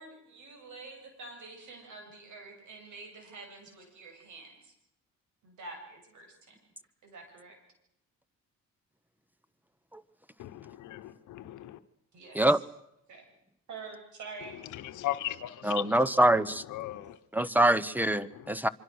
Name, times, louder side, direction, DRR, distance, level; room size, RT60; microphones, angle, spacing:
voice 1, 0.0-4.7 5.4-6.6 7.0-7.6 12.1-12.6 13.1-13.3 13.7-14.6, right 3 dB, 75° right, 7.9 m, -47 dB
voice 2, 10.4-11.8 14.7-16.0 16.7-17.5 18.3-18.5, left 14 dB, 80° left, 1.0 m, -38 dB
voice 3, 15.6-16.6 17.3-18.7, right 1 dB, 5° right, 1.0 m, -24 dB
25.0 x 24.5 x 6.4 m
cardioid pair, 90°, 30 cm